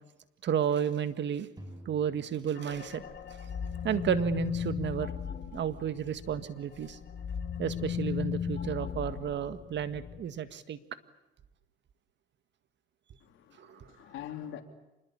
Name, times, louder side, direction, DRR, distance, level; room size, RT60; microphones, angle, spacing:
voice 1, 0.4-1.5 1.9-3.0 3.8-5.1 5.5-7.0 7.6-10.8 13.6-13.9, right 9 dB, 65° right, 1.8 m, -32 dB
sound 1, 1.6-3.7, equal, 20° right, 6.9 m, -51 dB
sound 2, 2.5-6.5 6.8-10.2, left 8 dB, 60° left, 2.8 m, -36 dB
voice 2, 13.2-14.6, left 11 dB, 85° left, 3.3 m, -44 dB
26.5 x 21.0 x 8.7 m
cardioid pair, 90°, 20 cm